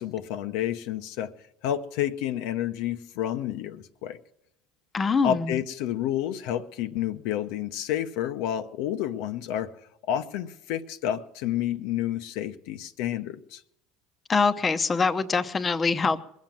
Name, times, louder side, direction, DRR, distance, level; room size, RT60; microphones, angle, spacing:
voice 1, 0.0-1.3 1.6-4.2 5.2-9.7 10.1-13.6, left 11 dB, 75° left, 0.8 m, -30 dB
voice 2, 4.9-5.6 14.3-16.2, left 4 dB, 25° left, 0.8 m, -24 dB
21.0 x 7.4 x 7.5 m
supercardioid pair, 105°, 0 cm